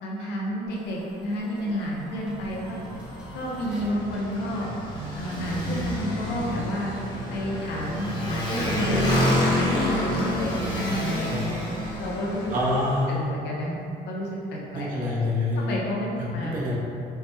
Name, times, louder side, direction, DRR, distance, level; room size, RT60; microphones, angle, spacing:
voice 1, 0.0-2.8 3.3-4.7 5.2-6.9 7.3-11.6 12.0-12.5 12.9-13.7 14.1-14.9 15.6-16.8, equal, 80° left, -3 dB, 0.8 m, -30 dB
sound 1, 0.7-6.5, equal, 5° right, 0.8 m, -47 dB
Motorcycle, 2.4-13.1, left 1 dB, 25° left, 1.0 m, -28 dB
voice 2, 12.5-13.1 14.7-15.7 16.2-16.8, left 1 dB, 55° right, -5 dB, 0.8 m, -26 dB
4.7 x 2.2 x 3.2 m, 2.7 s
cardioid pair, 110°, 17 cm